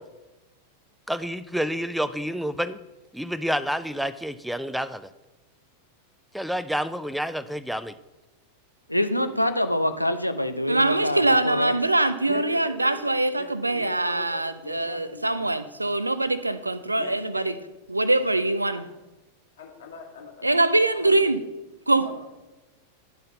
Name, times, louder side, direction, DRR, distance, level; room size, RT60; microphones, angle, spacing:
voice 1, 1.1-2.8 3.1-5.1 6.3-7.9, equal, ahead, 14 dB, 0.3 m, -29 dB
voice 2, 8.9-11.7, left 1 dB, 90° left, 9 dB, 0.4 m, -25 dB
voice 3, 10.7-17.5 17.9-18.9 20.4-21.4 21.9-22.1, right 2 dB, 85° right, 13 dB, 0.3 m, -23 dB
voice 4, 12.2-15.4 17.0-17.4 19.6-21.3 21.9-22.1, left 4 dB, 60° left, 0 dB, 1.5 m, -41 dB
11.5 x 3.9 x 3.9 m, 1.1 s
figure-of-eight pair, 90°, 0 cm